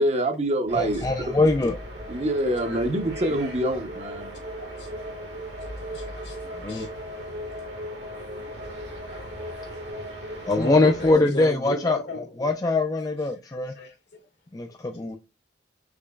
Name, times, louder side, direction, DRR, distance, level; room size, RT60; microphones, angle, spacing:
voice 1, 0.0-1.3 2.1-4.3, right 1 dB, 35° right, 0.7 m, -25 dB
sound 1, 0.7-11.1, equal, 80° right, 1.7 m, -37 dB
voice 2, 0.8-1.8 6.6-6.9 10.5-12.0 12.4-13.7 14.5-15.2, left 2 dB, 20° left, 0.4 m, -22 dB
voice 3, 4.6-4.9 5.8-6.9 7.7-7.8 10.4-12.5 13.4-14.2 14.7-14.8, left 1 dB, 75° left, 1.6 m, -36 dB
5.0 x 3.6 x 2.2 m
head